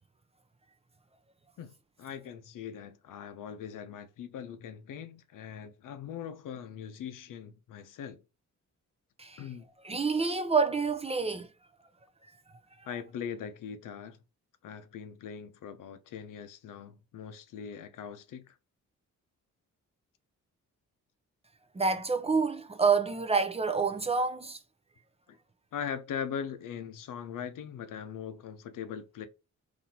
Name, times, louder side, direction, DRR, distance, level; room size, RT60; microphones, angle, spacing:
voice 1, 1.6-8.2 9.4-9.6 12.8-14.2 14.6-18.5 25.3-25.4 25.7-29.3, left 8 dB, 75° left, 0.7 m, -41 dB
voice 2, 9.8-11.5 12.8-12.9 21.7-24.6, right 4 dB, 20° right, 0.5 m, -28 dB
4.1 x 2.7 x 2.8 m
cardioid pair, 75°, 32 cm